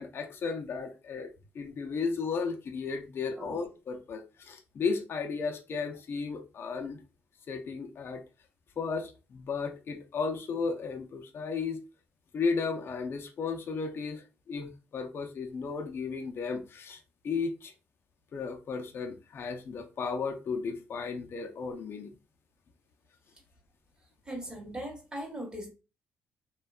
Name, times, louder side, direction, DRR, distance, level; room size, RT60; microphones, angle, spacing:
voice 1, 0.0-7.0 7.5-8.2 8.8-11.8 12.3-17.0 17.2-17.7 18.3-22.1, left 5 dB, 50° left, 0.5 m, -34 dB
voice 2, 24.3-25.7, right 1 dB, 15° right, 1.0 m, -39 dB
2.7 x 2.2 x 2.3 m
cardioid pair, 90°, 5 cm